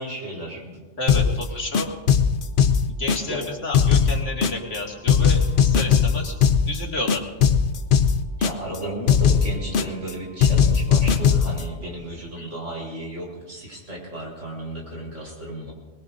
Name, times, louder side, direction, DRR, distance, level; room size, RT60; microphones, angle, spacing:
voice 1, 0.0-0.8 1.1-1.2 3.2-3.4 8.4-15.7, right 1 dB, 80° right, -2 dB, 4.5 m, -34 dB
voice 2, 1.0-1.9 3.0-6.3 6.7-7.2 12.4-12.5, left 2 dB, 85° left, -1 dB, 2.6 m, -30 dB
sound 1, 1.1-1.4 1.7-3.4 3.7-4.8 5.1-6.8 7.1-8.8 9.1-10.1 10.4-11.6, left 7 dB, 55° left, 0.8 m, -19 dB
21.5 x 21.5 x 2.6 m, 1.2 s
omnidirectional pair, 1.2 m